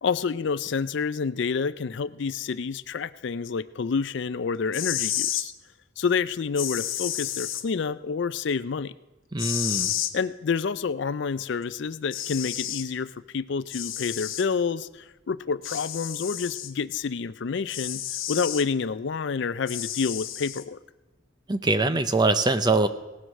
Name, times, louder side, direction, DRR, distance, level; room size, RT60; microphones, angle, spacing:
voice 1, 0.0-5.5 6.0-8.9 10.1-20.8, left 5 dB, 60° left, 15 dB, 0.4 m, -28 dB
sound 1, 4.6-5.5 6.6-7.6 9.4-10.1 11.6-11.7 12.1-12.9 13.7-14.5 15.6-16.7 17.7-18.7 19.7-20.6, left 12 dB, 75° left, 1.0 m, -31 dB
voice 2, 9.3-9.9 21.5-22.9, right 2 dB, 20° right, 10 dB, 0.6 m, -23 dB
17.5 x 7.8 x 6.4 m, 1.1 s
head